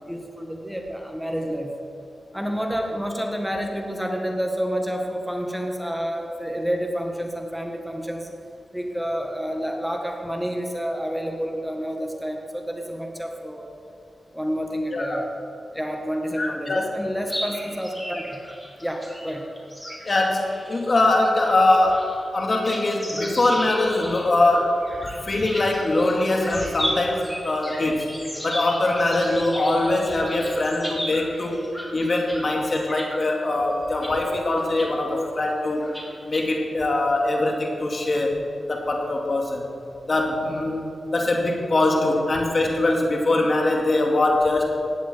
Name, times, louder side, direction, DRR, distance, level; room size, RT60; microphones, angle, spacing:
voice 1, 0.0-1.7 2.3-8.3 8.7-13.7 14.3-15.3 15.7-18.4 18.8-19.5, equal, ahead, 2 dB, 1.7 m, -29 dB
voice 2, 14.9-15.2 16.4-16.8 20.0-22.1 22.3-24.8 25.2-28.1 28.4-35.8 36.3-38.4 38.7-39.6 40.1-44.8, left 2 dB, 50° left, 0 dB, 2.4 m, -22 dB
sound 1, 17.3-32.5 32.7-33.2 33.8-34.1 34.5-34.9 35.2-35.3 35.8-36.4, equal, 15° left, 3.5 m, -35 dB
16.5 x 10.0 x 4.6 m, 2.8 s
cardioid pair, 55°, 0 cm